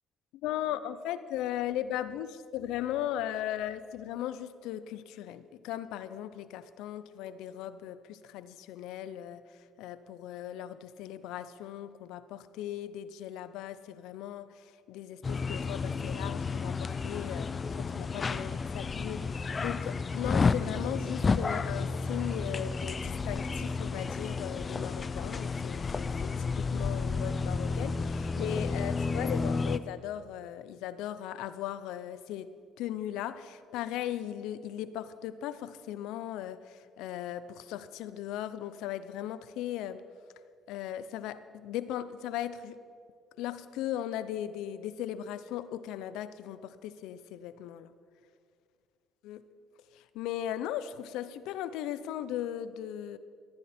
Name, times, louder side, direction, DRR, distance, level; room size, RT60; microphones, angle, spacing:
voice 1, 0.4-9.4 9.8-32.5 32.8-40.0 40.7-42.8 43.4-47.9 49.2-49.4 49.9-53.2, left 11 dB, 80° left, 14 dB, 0.7 m, -38 dB
sound 1, 15.2-29.8, left 4 dB, 35° left, 0.7 m, -31 dB
18.5 x 15.0 x 4.4 m, 2.2 s
supercardioid pair, 75°, 0 cm